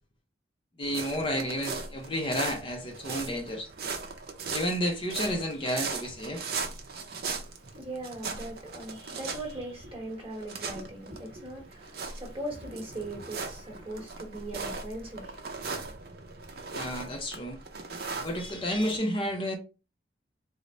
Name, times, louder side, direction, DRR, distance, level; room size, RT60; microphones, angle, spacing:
voice 1, 0.8-3.7 4.5-6.4 16.7-17.6 18.2-19.5, equal, 30° left, 0.5 m, -31 dB
sound 1, 0.8-19.0, right 4 dB, 55° right, 0.6 m, -39 dB
voice 2, 7.4-15.4, right 1 dB, 30° right, 1.1 m, -40 dB
3.9 x 2.1 x 3.1 m
head